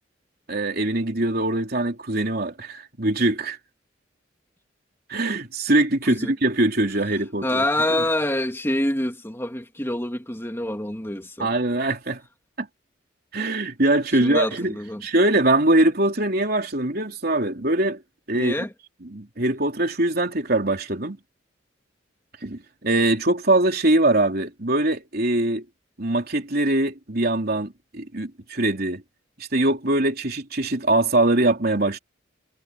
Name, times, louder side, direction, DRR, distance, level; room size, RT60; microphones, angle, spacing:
voice 1, 0.5-3.6 5.1-7.6 7.9-8.0 11.4-12.2 12.6-12.7 13.3-18.0 18.3-18.5 19.1-21.2 22.4-25.6 26.0-29.0 29.5-32.0, right 2 dB, 55° right, 3.5 m, -22 dB
voice 2, 7.4-11.5 14.2-15.0 18.3-18.7, left 1 dB, 15° left, 2.5 m, -26 dB
head